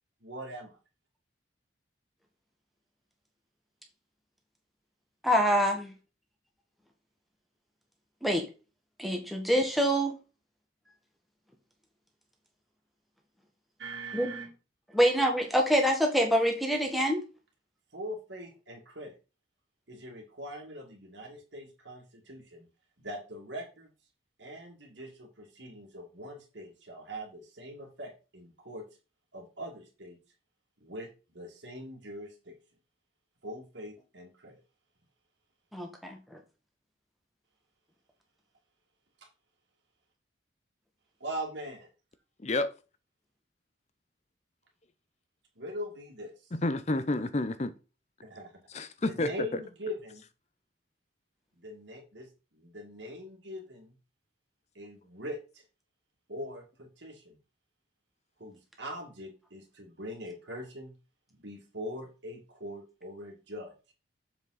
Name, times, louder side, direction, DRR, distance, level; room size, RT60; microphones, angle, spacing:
voice 1, 0.2-0.8 13.8-14.5 17.9-19.1 19.9-22.7 23.0-23.9 24.4-28.8 29.3-30.2 30.8-32.5 33.4-34.6 41.2-41.9 45.6-46.5 48.2-48.5 49.0-50.2 51.5-52.3 52.5-54.0 54.7-55.6 56.3-57.4 58.4-60.9 61.3-63.7, equal, 65° right, 2.3 m, -42 dB
voice 2, 5.2-5.9 8.2-8.4 9.0-10.1 14.1-14.5 14.9-17.2 35.7-36.2, equal, ahead, 1.6 m, -25 dB
voice 3, 42.4-42.7 46.5-47.7 48.7-49.3, left 2 dB, 35° left, 0.6 m, -29 dB
7.3 x 5.2 x 4.0 m
head